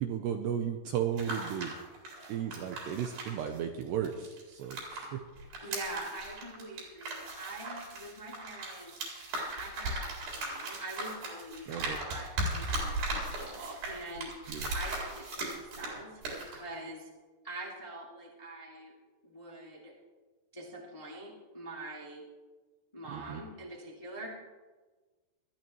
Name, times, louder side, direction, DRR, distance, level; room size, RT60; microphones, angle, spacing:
voice 1, 0.0-1.7 2.3-5.2 5.6-5.7 11.7-12.0 14.5-14.7 23.1-23.4, right 9 dB, 80° right, 4 dB, 2.5 m, -35 dB
sound 1, 1.0-5.1 5.4-16.0 16.2-16.5, right 2 dB, 60° right, 6.1 m, -37 dB
voice 2, 2.1-2.6 5.6-8.9 9.5-17.1 17.4-18.9 19.2-19.9 20.5-22.2 22.9-24.3, right 2 dB, 20° left, -4 dB, 1.0 m, -44 dB
21.0 x 13.5 x 3.1 m, 1.3 s
omnidirectional pair, 5.6 m